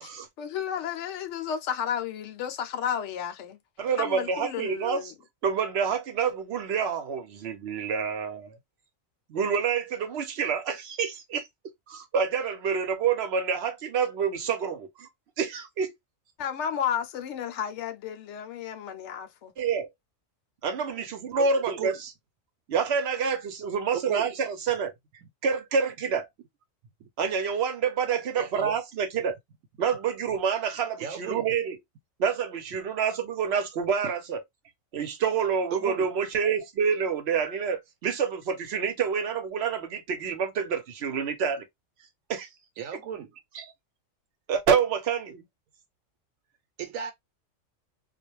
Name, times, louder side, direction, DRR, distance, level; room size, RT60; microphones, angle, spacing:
voice 1, 0.4-3.6 4.0-5.1 16.4-19.5, left 8 dB, 70° left, 0.9 m, -32 dB
voice 2, 3.8-5.1 5.4-8.6 9.3-11.5 11.9-15.1 15.4-15.9 19.6-19.9 20.6-22.1 22.7-24.9 25.4-26.3 27.2-29.4 29.8-31.8 32.2-34.4 34.9-41.6 42.3-42.5 43.5-43.7 44.5-45.4, right 6 dB, 60° right, 0.8 m, -27 dB
voice 3, 23.9-24.3 28.3-28.8 31.0-31.4 34.0-34.1 35.7-36.1 42.8-43.3 46.8-47.1, right 8 dB, 90° right, 1.0 m, -34 dB
2.4 x 2.1 x 3.0 m
omnidirectional pair, 1.4 m